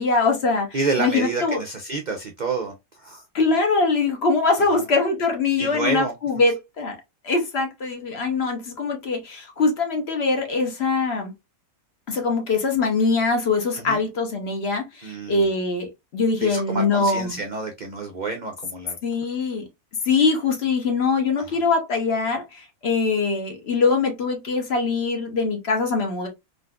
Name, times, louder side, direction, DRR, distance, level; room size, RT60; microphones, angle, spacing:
voice 1, 0.0-1.6 3.3-7.0 7.2-11.3 12.1-17.4 19.0-19.7 20.0-26.3, left 4 dB, 50° left, 1.0 m, -23 dB
voice 2, 0.7-3.2 4.7-4.8 5.6-6.1 13.7-14.0 15.0-15.5 16.4-19.0 21.4-21.5, right 3 dB, 65° right, 0.4 m, -29 dB
3.9 x 2.5 x 2.3 m
omnidirectional pair, 1.5 m